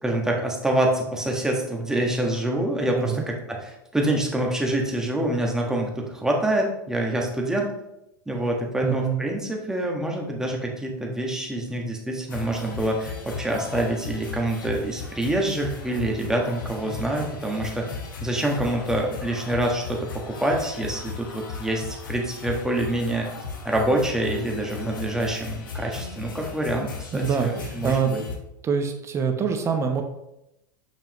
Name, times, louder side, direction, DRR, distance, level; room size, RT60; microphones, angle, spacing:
voice 1, 0.0-3.6 3.9-7.7 8.3-23.3 23.6-28.2, right 1 dB, 5° right, 0 dB, 1.4 m, -26 dB
voice 2, 8.8-9.2 27.1-28.1 28.6-30.0, right 6 dB, 25° right, 5 dB, 0.8 m, -25 dB
sound 1, 12.3-28.3, left 4 dB, 80° left, 1.3 m, -37 dB
7.2 x 5.5 x 3.0 m, 0.85 s
hypercardioid pair, 100°, 11 cm